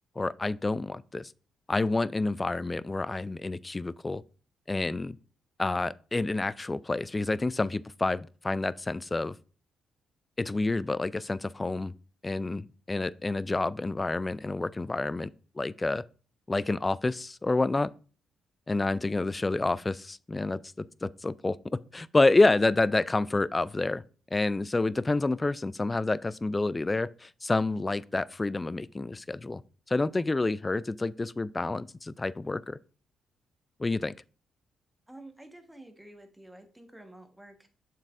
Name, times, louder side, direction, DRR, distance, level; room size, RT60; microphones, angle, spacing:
voice 1, 0.2-1.3 1.7-4.2 4.7-5.2 5.6-9.3 10.4-11.9 12.2-15.3 15.6-16.0 16.5-17.9 18.7-20.6 21.0-21.6 21.9-24.0 24.3-29.6 29.9-32.8 33.8-34.1, left 2 dB, 25° left, 0.3 m, -28 dB
voice 2, 35.1-37.7, right 1 dB, 10° right, 1.3 m, -50 dB
7.1 x 5.5 x 2.5 m
hypercardioid pair, 45°, 0 cm